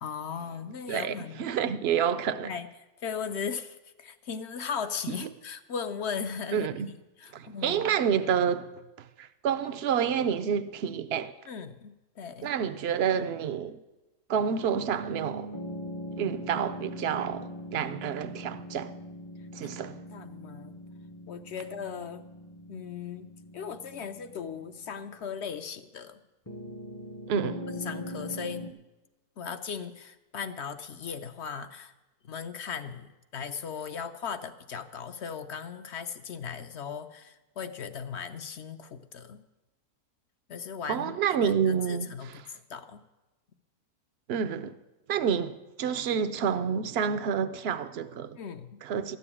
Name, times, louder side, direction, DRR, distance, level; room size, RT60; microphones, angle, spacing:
voice 1, 0.0-1.4 2.4-2.7 3.0-8.0 11.5-12.5 19.7-20.8 21.3-22.3 22.7-26.2 27.7-28.7 29.4-31.9 32.2-39.4 40.5-41.2 41.4-42.3 42.7-43.0 48.4-48.8, left 6 dB, 55° left, 0.8 m, -38 dB
voice 2, 0.9-2.5 5.2-5.3 6.5-6.9 7.3-8.7 9.2-11.3 12.4-13.8 14.3-15.5 16.2-18.9 19.5-20.0 27.3-27.6 40.9-42.4 44.3-44.7 45.1-48.4 48.8-49.2, right 7 dB, 60° right, 0.7 m, -29 dB
sound 1, 14.7-25.4 26.5-28.7, equal, 20° left, 0.5 m, -41 dB
13.0 x 6.9 x 9.8 m
omnidirectional pair, 1.6 m